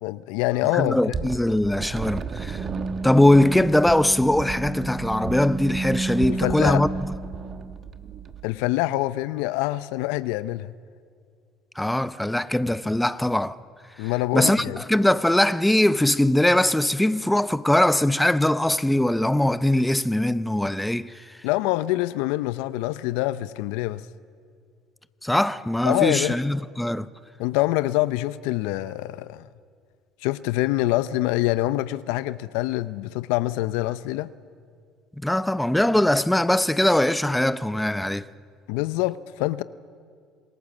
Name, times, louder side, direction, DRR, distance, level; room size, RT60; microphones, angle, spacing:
voice 1, 0.0-1.3 6.2-6.8 8.4-10.7 14.0-14.8 21.4-24.1 25.8-26.4 27.4-29.5 30.2-34.3 38.7-39.6, left 17 dB, 80° left, 0.6 m, -25 dB
voice 2, 0.7-2.7 3.0-6.9 11.8-13.6 14.0-21.2 25.2-27.1 35.2-38.3, left 1 dB, 5° left, 0.7 m, -21 dB
sound 1, 1.1-8.4, right 3 dB, 40° right, 1.3 m, -31 dB
27.0 x 20.0 x 7.3 m
supercardioid pair, 85°, 0 cm